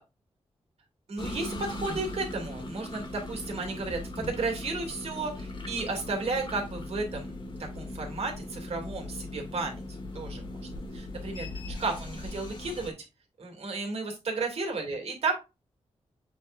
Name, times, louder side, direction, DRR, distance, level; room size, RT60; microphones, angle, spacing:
voice 1, 1.1-7.4 7.7-9.8 10.1-10.6 10.9-11.5 11.8-12.9 13.4-15.3, right 3 dB, 65° right, 2 dB, 2.7 m, -33 dB
sound 1, 1.2-12.9, left 2 dB, 45° left, 1.8 m, -39 dB
8.2 x 4.4 x 2.6 m, 0.26 s
wide cardioid pair, 130°, 11 cm